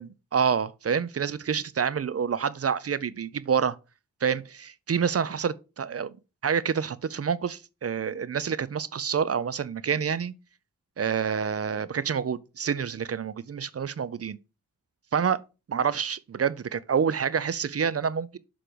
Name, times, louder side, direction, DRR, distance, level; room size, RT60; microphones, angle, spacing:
voice 1, 0.0-3.8 4.2-6.1 6.4-10.3 11.0-14.4 15.1-15.4 15.7-18.3, right 7 dB, 45° right, 0.5 m, -27 dB
6.8 x 3.8 x 4.8 m
wide cardioid pair, 70°, 34 cm